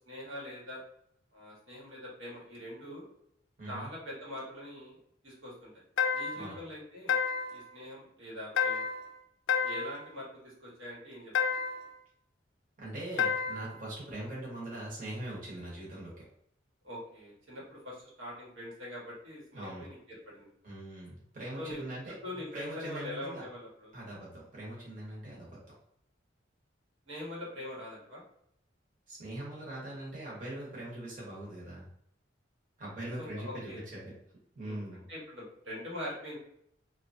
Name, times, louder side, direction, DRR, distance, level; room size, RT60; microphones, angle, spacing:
voice 1, 0.1-0.8 1.3-3.0 3.7-5.0 5.2-5.8 6.1-7.1 7.5-8.9 9.6-11.3 16.8-20.5 21.6-21.8 22.2-23.9 27.1-28.2 33.2-33.8 34.6-36.4, left 1 dB, 90° right, -5 dB, 1.2 m, -43 dB
voice 2, 3.6-3.9 6.3-6.6 12.8-16.2 19.5-19.8 20.6-22.1 22.5-23.4 23.9-25.6 29.1-31.8 32.8-34.1 34.5-35.0, right 1 dB, 45° right, -5 dB, 1.0 m, -41 dB
sound 1, 6.0-6.5 7.1-7.6 8.6-9.1 9.5-10.0 11.3-11.9 13.2-13.7, left 6 dB, 85° left, 0.4 m, -30 dB
2.9 x 2.3 x 2.5 m, 0.73 s
head